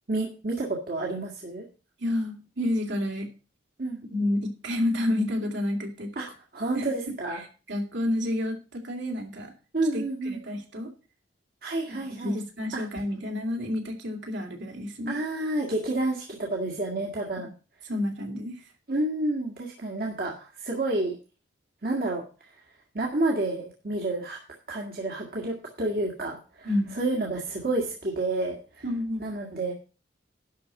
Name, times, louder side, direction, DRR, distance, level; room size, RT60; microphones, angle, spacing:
voice 1, 0.1-1.7 3.8-4.0 6.2-6.3 6.5-7.4 9.7-10.4 11.6-12.4 12.7-12.8 15.1-17.5 18.9-21.2 21.8-22.2 22.9-24.4 24.7-28.8 29.2-29.7, right 2 dB, 50° right, -1 dB, 1.8 m, -29 dB
voice 2, 2.0-3.3 4.1-6.1 6.7-7.1 7.7-9.5 9.9-10.9 11.9-15.2 17.9-18.6 26.6-27.0 28.8-29.3, left 1 dB, 70° right, 1 dB, 2.8 m, -30 dB
11.5 x 4.3 x 7.5 m, 0.34 s
head